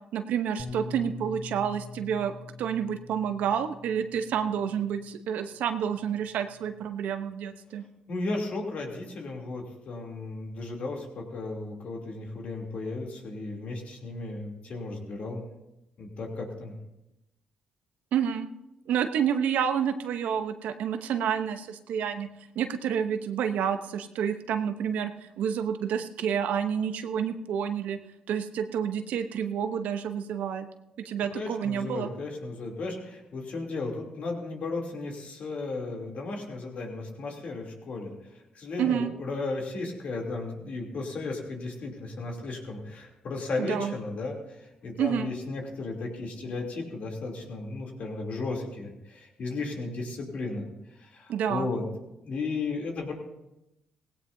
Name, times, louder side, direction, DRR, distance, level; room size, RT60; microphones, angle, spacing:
voice 1, 0.1-7.8 18.1-18.5 18.9-22.3 22.5-28.0 28.3-30.7 31.0-32.1 38.8-39.1 43.6-43.9 45.0-45.3 51.3-51.7, right 8 dB, 80° right, 9 dB, 0.9 m, -29 dB
Bass guitar, 0.6-5.1 5.9-6.8, left 4 dB, 20° left, 6.2 m, -44 dB
voice 2, 8.1-15.4 16.0-16.7 31.3-38.1 38.5-50.7 51.0-51.8 52.2-53.1, left 3 dB, 60° left, 0 dB, 3.1 m, -35 dB
17.5 x 16.5 x 2.7 m, 0.92 s
supercardioid pair, 60°, 3 cm